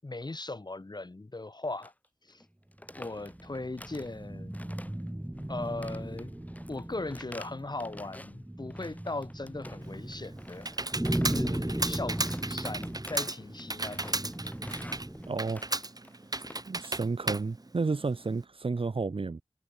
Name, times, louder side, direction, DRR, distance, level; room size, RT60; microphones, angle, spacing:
voice 1, 0.0-1.9 2.2-2.4 3.0-4.6 5.5-6.3 6.7-11.0 11.3-14.3, left 2 dB, 45° left, 6.3 m, -38 dB
sound 1, 1.8-2.1 2.3-2.5 2.7-4.2 4.5-5.1 5.4-8.4 8.7-10.0 10.4-16.6, left 1 dB, 15° left, 4.5 m, -49 dB
sound 2, 2.9-15.5, right 1 dB, 10° right, 0.7 m, -37 dB
Computer keyboard, 9.8-18.4, right 2 dB, 40° right, 3.5 m, -35 dB
voice 2, 15.3-15.6 16.7-19.4, right 4 dB, 65° right, 1.6 m, -31 dB
wide cardioid pair, 50°, 10 cm